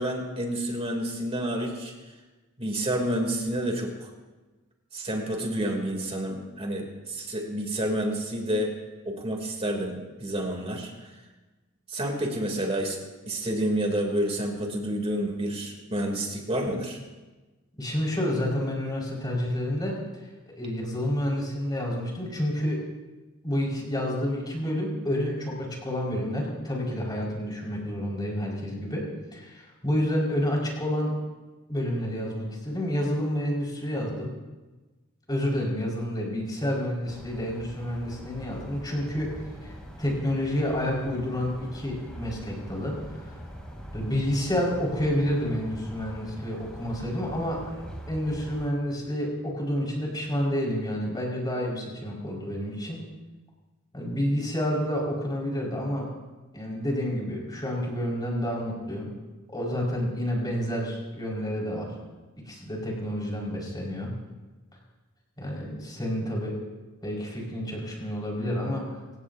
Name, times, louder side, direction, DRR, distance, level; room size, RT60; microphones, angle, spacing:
voice 1, 0.0-1.9 2.6-4.1 4.9-8.8 9.0-10.9 11.9-13.0 13.3-17.0, right 1 dB, 30° right, 1 dB, 3.1 m, -29 dB
voice 2, 17.8-20.0 20.5-22.8 23.4-29.1 29.3-31.1 31.7-34.3 35.3-39.3 39.6-43.4 43.9-53.0 53.9-56.1 56.5-59.1 59.5-61.9 62.5-64.1 65.4-66.5 67.0-68.9, equal, 20° left, -3 dB, 5.2 m, -29 dB
sound 1, 37.0-48.6, equal, 5° left, 3.2 m, -43 dB
27.5 x 16.5 x 2.8 m, 1.2 s
head